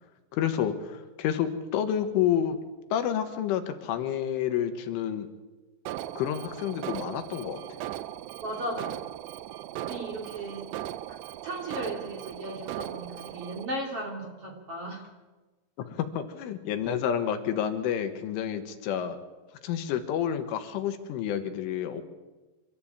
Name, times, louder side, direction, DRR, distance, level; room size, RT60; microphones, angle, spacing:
voice 1, 0.3-2.6 2.9-5.3 6.2-7.6 15.8-19.2 19.6-22.0, left 9 dB, 75° left, 8 dB, 3.7 m, -29 dB
Alarm, 5.9-13.7, right 13 dB, 90° right, 2.3 m, -38 dB
voice 2, 8.4-9.1 9.8-10.7 11.1-11.2 11.4-15.1, right 1 dB, 35° right, 0 dB, 2.7 m, -36 dB
26.0 x 14.0 x 8.7 m, 1.2 s
omnidirectional pair, 5.8 m